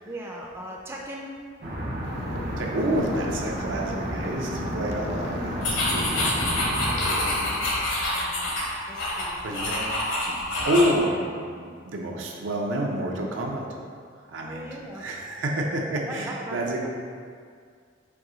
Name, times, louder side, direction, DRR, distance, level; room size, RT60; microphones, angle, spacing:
voice 1, 0.0-1.4 8.1-8.5 8.9-9.4 14.4-15.1 15.9-16.6, right 1 dB, 15° right, -2 dB, 0.3 m, -39 dB
sound 1, 1.6-7.0, equal, 55° right, 0.9 m, -32 dB
sound 2, 2.0-7.6, left 2 dB, 60° left, 0.4 m, -38 dB
voice 2, 2.6-6.8 8.6-9.0 9.4-10.4 10.6-13.7 14.3-16.9, right 1 dB, 75° right, 0 dB, 0.6 m, -29 dB
sound 3, 5.6-11.0, left 1 dB, 75° left, 0.9 m, -26 dB
4.6 x 2.6 x 3.8 m, 2.1 s
head